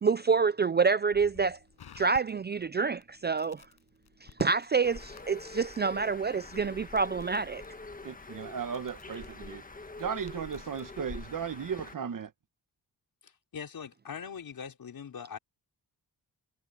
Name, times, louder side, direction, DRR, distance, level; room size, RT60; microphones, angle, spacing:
voice 1, 0.0-1.6 1.9-3.7 4.2-7.6, right 5 dB, 30° right, 0.4 m, -27 dB
Crackle, 1.1-11.0, left 8 dB, 80° left, 7.8 m, -57 dB
Bird, 4.8-11.9, left 3 dB, 20° left, 1.5 m, -45 dB
voice 2, 8.0-9.6 10.0-12.3, right 7 dB, 55° right, 1.6 m, -36 dB
voice 3, 13.2-15.4, left 7 dB, 65° left, 5.2 m, -42 dB
wide cardioid pair, 105°, 38 cm